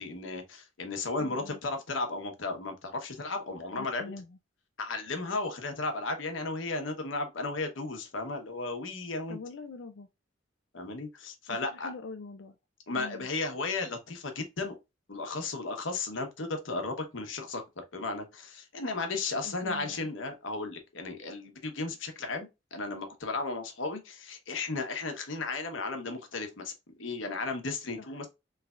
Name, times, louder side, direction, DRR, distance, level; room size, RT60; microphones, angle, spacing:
voice 1, 0.0-4.0 4.8-9.4 10.7-11.9 12.9-14.7 15.1-17.6 17.9-26.7 27.0-28.3, left 3 dB, 85° left, 1.0 m, -34 dB
voice 2, 1.2-1.6 3.7-4.4 9.3-10.1 11.5-12.6 12.9-13.3 19.4-20.1 28.0-28.1, left 4 dB, 65° left, 0.4 m, -44 dB
3.3 x 3.3 x 2.4 m
head